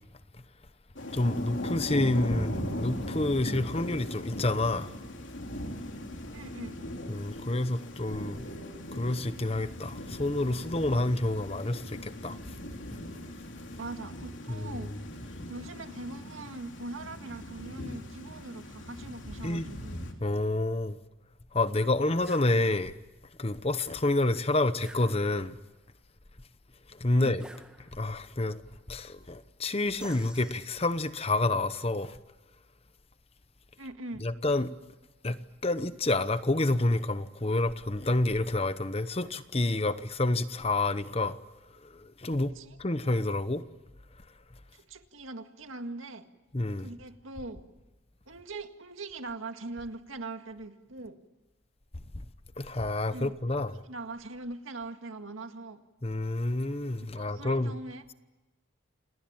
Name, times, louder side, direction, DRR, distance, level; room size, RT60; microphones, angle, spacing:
Thunder / Rain, 1.0-20.1, equal, 70° left, 3.2 m, -39 dB
voice 1, 1.1-4.9 7.1-8.5 8.9-12.4 14.5-15.0 19.4-19.7 20.2-21.0 21.5-22.9 23.4-25.5 27.0-27.4 27.9-28.6 28.9-32.1 34.2-34.7 35.2-35.4 35.6-41.4 42.2-42.5 42.8-43.6 46.5-46.9 52.6-53.8 56.0-57.7, left 2 dB, 30° left, 0.9 m, -28 dB
voice 2, 6.3-6.8 13.8-14.9 15.5-20.0 27.1-27.4 33.8-34.3 42.6-42.8 44.7-46.3 46.8-47.6 48.3-51.2 53.1-53.6 53.8-55.8 57.0-58.1, right 2 dB, 90° right, 2.0 m, -41 dB
sound 1, 22.2-22.5 24.8-25.6 27.4-28.2 30.0-31.1, equal, 5° right, 1.8 m, -50 dB
28.5 x 19.0 x 8.9 m
head